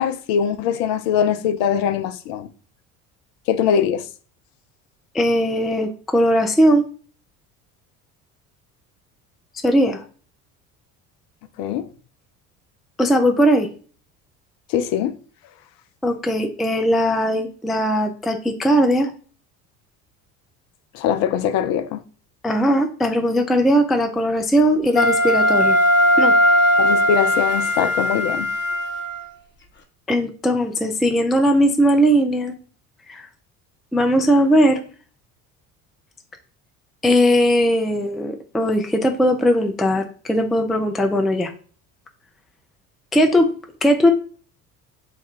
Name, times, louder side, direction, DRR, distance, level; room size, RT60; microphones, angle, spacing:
voice 1, 0.0-2.5 3.5-4.0 11.6-11.9 14.7-15.2 20.9-22.0 26.8-28.5, left 8 dB, 50° left, 0.5 m, -22 dB
voice 2, 5.1-6.9 9.6-10.0 13.0-13.7 16.0-19.1 22.4-25.8 26.2-26.3 30.1-32.5 33.1-33.2 33.9-34.8 37.0-41.5 43.1-43.5 43.8-44.1, equal, ahead, 0.3 m, -18 dB
Wind instrument woodwind instrument, 24.9-29.2, equal, 25° left, 0.9 m, -18 dB
3.4 x 2.3 x 4.4 m
hypercardioid pair, 65°, 44 cm